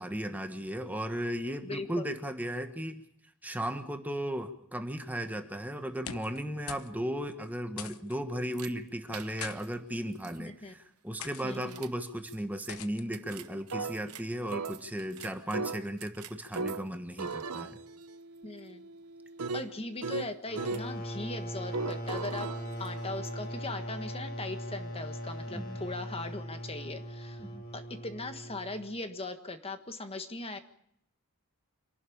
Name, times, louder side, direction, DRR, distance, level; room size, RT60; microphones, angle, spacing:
voice 1, 0.0-3.0 3.4-17.8 25.5-25.8 27.4-27.6, equal, 5° right, 6 dB, 1.3 m, -36 dB
voice 2, 1.6-2.1 10.4-10.7 11.4-11.8 18.4-18.9 19.5-22.5 22.8-27.4 27.7-30.6, left 2 dB, 25° left, 8 dB, 1.5 m, -39 dB
sound 1, 5.9-6.4 6.7-6.9 7.2-7.3 7.8-8.2 9.1-9.6 10.3-10.6 11.2-11.5 12.7-13.0, left 8 dB, 70° left, 1.0 m, -43 dB
sound 2, 8.5-8.7 9.1-9.7 10.2-10.3 11.5-11.9 12.3-12.4 12.6-12.7 13.1-14.2 14.5-16.9 17.2-20.9 21.7-23.5, right 4 dB, 85° right, 0.9 m, -38 dB
sound 3, 20.5-29.0, equal, 45° left, 3.4 m, -40 dB
26.5 x 12.0 x 8.6 m, 0.72 s
head